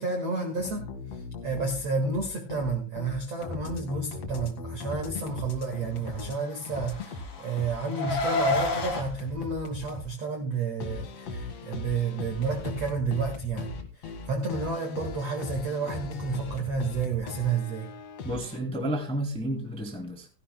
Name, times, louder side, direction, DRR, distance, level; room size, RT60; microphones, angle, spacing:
voice 1, 0.0-17.9, right 4 dB, 75° right, 1.4 m, -31 dB
sound 1, 0.6-6.4 6.6-10.1 10.8-18.6, left 3 dB, 80° left, 1.5 m, -38 dB
Car, 6.5-9.0, left 2 dB, 35° left, 3.0 m, -29 dB
voice 2, 18.2-20.3, right 1 dB, 5° left, 0.5 m, -31 dB
17.0 x 15.5 x 2.2 m
omnidirectional pair, 6.0 m